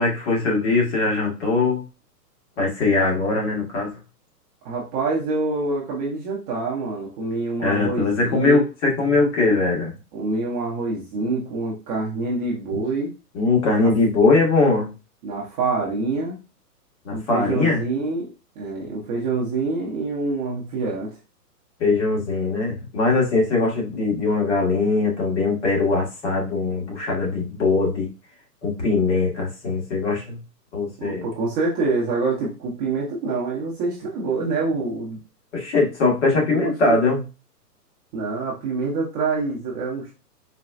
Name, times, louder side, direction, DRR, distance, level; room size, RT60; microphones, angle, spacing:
voice 1, 0.0-1.8 2.6-3.9 7.6-9.9 13.3-14.9 17.0-17.8 21.8-28.1 28.6-30.4 30.7-31.3 35.5-37.2, left 3 dB, 45° left, -2 dB, 1.5 m, -21 dB
voice 2, 4.6-8.6 10.1-13.1 13.8-13.9 15.2-16.4 17.1-21.1 31.0-35.2 36.3-37.0 38.1-40.1, right 3 dB, 25° right, -4 dB, 0.7 m, -26 dB
4.2 x 2.2 x 2.3 m, 0.30 s
hypercardioid pair, 140°, 48 cm